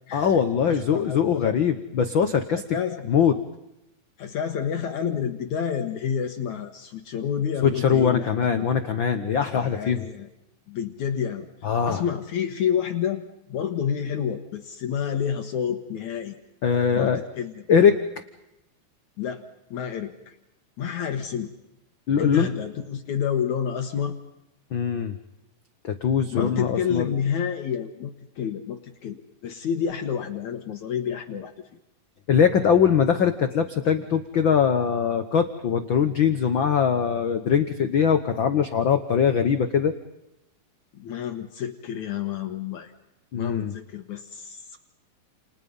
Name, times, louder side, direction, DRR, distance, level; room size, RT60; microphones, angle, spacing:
voice 1, 0.1-2.6 3.1-3.3 7.6-10.0 11.6-12.0 16.6-17.2 17.7-18.0 22.1-22.5 24.7-25.2 25.8-27.1 32.3-39.9 43.3-43.7, left 7 dB, 85° left, 8 dB, 1.0 m, -22 dB
voice 2, 0.7-1.5 2.5-3.1 4.2-8.3 8.6-8.7 9.4-10.3 10.7-11.5 11.9-13.2 13.5-16.4 17.0-17.1 17.4-17.5 19.2-19.5 19.7-20.4 20.8-21.5 22.2-24.2 26.3-31.5 40.9-42.9 43.4-44.8, left 8 dB, 65° left, 6 dB, 2.5 m, -29 dB
30.0 x 29.0 x 5.5 m, 0.89 s
omnidirectional pair, 4.0 m